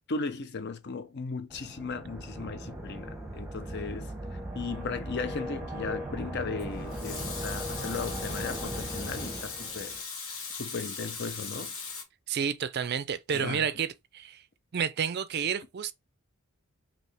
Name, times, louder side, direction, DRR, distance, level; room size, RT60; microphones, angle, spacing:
voice 1, 0.1-10.0 10.5-11.7 13.3-13.7, left 4 dB, 50° left, 0.6 m, -36 dB
sound 1, 1.5-10.0, equal, 5° right, 0.8 m, -38 dB
Water tap faucet / Sink (filling or washing) / Liquid, 6.6-12.0, left 5 dB, 65° left, 1.5 m, -39 dB
voice 2, 12.3-13.9 14.1-14.4 14.7-15.9, right 7 dB, 50° right, 0.4 m, -30 dB
5.5 x 2.8 x 3.3 m
head